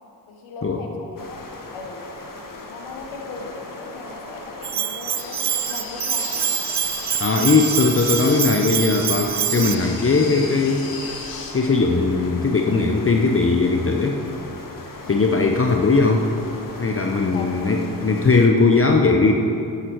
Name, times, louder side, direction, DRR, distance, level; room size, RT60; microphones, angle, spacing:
voice 1, 0.3-2.0 2.7-6.5 15.1-15.3 17.3-17.7, left 3 dB, 80° left, 2 dB, 1.4 m, -37 dB
sound 1, 1.2-18.5, left 3 dB, 45° left, 1.7 m, -39 dB
Bell, 4.6-9.8, right 10 dB, 35° right, 0.5 m, -25 dB
sound 2, 5.2-11.5, left 4 dB, 65° left, 2.0 m, -35 dB
voice 2, 7.2-10.9 11.5-14.2 15.1-16.3 16.8-19.3, left 3 dB, 30° left, 2 dB, 0.9 m, -19 dB
11.5 x 10.0 x 4.7 m, 2.9 s
supercardioid pair, 45°, 47 cm